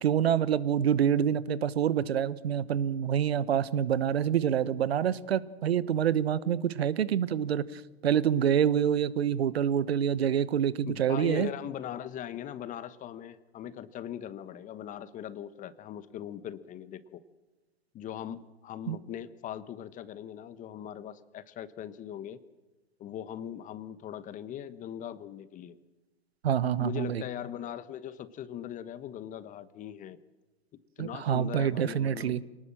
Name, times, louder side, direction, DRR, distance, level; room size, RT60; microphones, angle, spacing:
voice 1, 0.0-11.5 18.9-19.0 26.4-27.2 31.0-32.4, right 9 dB, 70° right, 18 dB, 1.1 m, -27 dB
voice 2, 10.8-17.2 17.9-22.4 23.0-25.8 26.8-30.2 30.7-32.4, left 10 dB, 25° left, 15 dB, 1.2 m, -40 dB
25.5 x 19.0 x 7.6 m, 1.1 s
hypercardioid pair, 115°, 32 cm